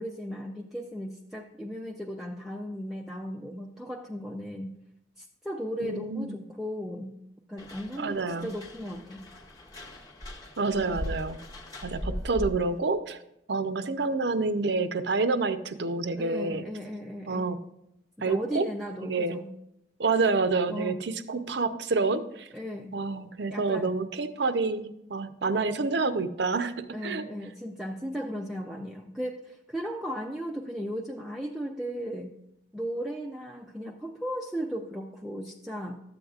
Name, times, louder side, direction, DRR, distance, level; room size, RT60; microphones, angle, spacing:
voice 1, 0.0-4.7 5.2-7.2 7.5-9.3 16.1-17.6 18.2-19.5 20.7-21.1 22.5-23.0 23.5-23.9 26.9-32.3 32.7-36.0, equal, ahead, -1 dB, 0.4 m, -36 dB
voice 2, 5.8-6.4 8.0-8.5 10.6-11.4 11.8-13.2 13.5-16.6 17.3-17.6 18.2-18.7 19.0-19.4 20.0-22.5 22.9-27.3, right 3 dB, 65° right, 10 dB, 0.6 m, -28 dB
sound 1, 7.6-12.8, equal, 20° left, 1.0 m, -39 dB
12.5 x 7.9 x 2.4 m, 0.80 s
head